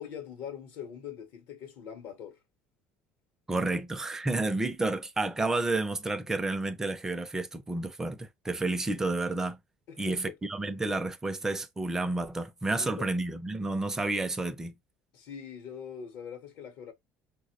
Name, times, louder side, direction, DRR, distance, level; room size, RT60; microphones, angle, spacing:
voice 1, 0.0-2.4 9.9-10.4 12.7-13.1 15.1-16.9, left 8 dB, 65° left, 0.7 m, -42 dB
voice 2, 3.5-9.6 10.0-14.7, right 2 dB, 10° right, 0.4 m, -30 dB
4.1 x 2.0 x 2.7 m
cardioid pair, 145°, 5 cm